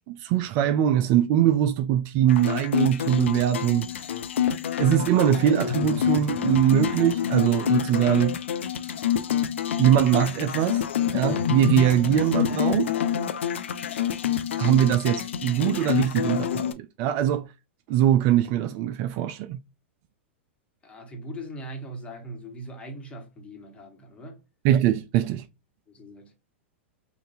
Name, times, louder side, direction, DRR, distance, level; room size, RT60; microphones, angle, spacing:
voice 1, 0.1-3.9 4.8-8.4 9.8-10.8 11.1-12.9 14.6-17.5 17.9-19.6 24.6-25.4, right 11 dB, 45° right, 0.4 m, -22 dB
sound 1, 2.3-16.7, left 9 dB, 70° left, 0.4 m, -27 dB
voice 2, 20.8-24.4 25.9-26.3, right 1 dB, 15° left, 1.3 m, -40 dB
3.8 x 2.6 x 2.6 m
hypercardioid pair, 105°, 7 cm